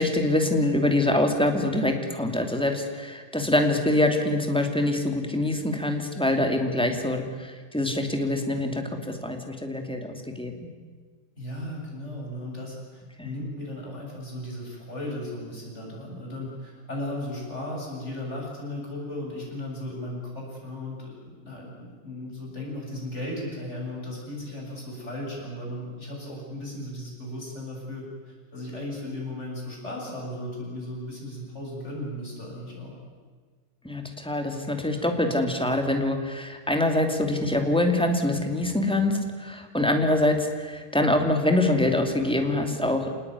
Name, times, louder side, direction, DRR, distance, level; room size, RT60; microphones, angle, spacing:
voice 1, 0.0-10.7 13.2-13.3 33.8-43.1, left 1 dB, ahead, 4 dB, 2.6 m, -25 dB
voice 2, 11.4-32.9, left 1 dB, 30° left, -2 dB, 8.0 m, -36 dB
27.0 x 19.0 x 9.7 m, 1.5 s
omnidirectional pair, 2.2 m